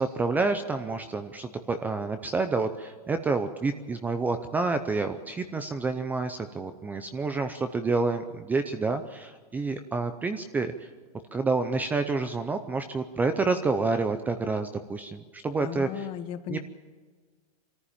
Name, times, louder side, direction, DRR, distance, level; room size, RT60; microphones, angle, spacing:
voice 1, 0.0-10.9 11.3-16.0 16.5-16.6, right 3 dB, 10° right, 9 dB, 0.6 m, -28 dB
voice 2, 15.6-16.6, left 10 dB, 25° left, 11 dB, 1.1 m, -35 dB
23.0 x 14.5 x 8.8 m, 1.5 s
supercardioid pair, 160°, 20 cm